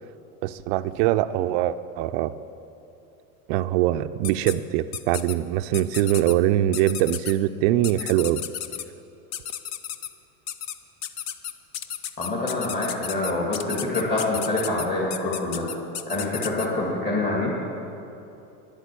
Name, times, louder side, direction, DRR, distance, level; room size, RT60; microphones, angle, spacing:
voice 1, 0.4-2.3 3.5-8.4, right 13 dB, 45° right, 12 dB, 0.4 m, -23 dB
sound 1, 4.2-4.5 4.9-5.3 5.7-6.3 6.7-7.3 7.8-8.8 9.3-10.1 10.5-10.7 11.0-16.7, left 10 dB, 40° left, 0.6 m, -33 dB
voice 2, 12.2-15.6 16.1-17.5, left 2 dB, 20° left, -6 dB, 2.2 m, -26 dB
11.0 x 8.2 x 8.4 m, 2.9 s
supercardioid pair, 135°, 43 cm